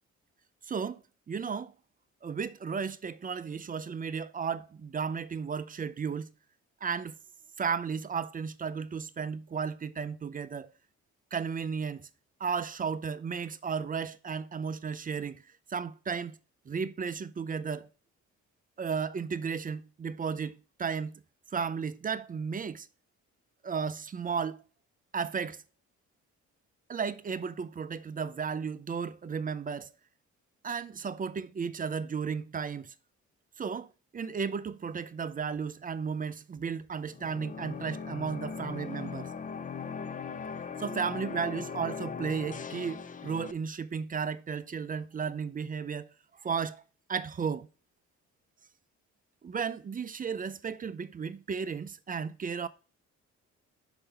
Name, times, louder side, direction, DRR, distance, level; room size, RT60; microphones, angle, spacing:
voice 1, 0.6-1.0 1.3-1.7 2.2-6.3 6.8-7.1 7.6-10.7 11.3-12.1 12.4-15.4 15.7-16.4 16.7-17.9 18.8-20.5 20.8-21.2 21.5-22.9 23.6-24.6 25.1-25.6 26.9-29.9 30.6-32.9 33.6-33.9 34.1-39.3 40.8-46.1 46.4-46.8 47.1-47.7 49.4-52.7, right 6 dB, 30° right, 0.5 m, -34 dB
sound 1, 37.1-43.5, left 5 dB, 25° left, 0.5 m, -39 dB
5.4 x 4.9 x 5.6 m
cardioid pair, 90°, 30 cm